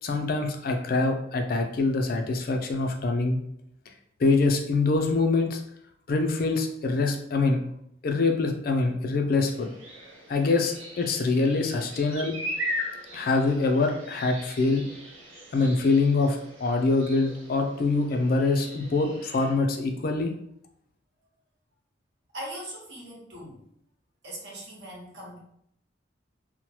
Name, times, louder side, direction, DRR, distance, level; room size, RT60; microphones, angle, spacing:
voice 1, 0.0-3.4 4.2-5.6 6.1-7.6 8.0-9.7 10.3-12.4 13.1-14.9 15.5-20.3, left 3 dB, 50° left, 4 dB, 0.3 m, -24 dB
sound 1, 9.5-19.6, equal, 80° right, 0.7 m, -39 dB
voice 2, 22.3-23.6 24.2-25.4, right 1 dB, 60° right, -4 dB, 1.0 m, -40 dB
2.8 x 2.1 x 3.0 m, 0.73 s
head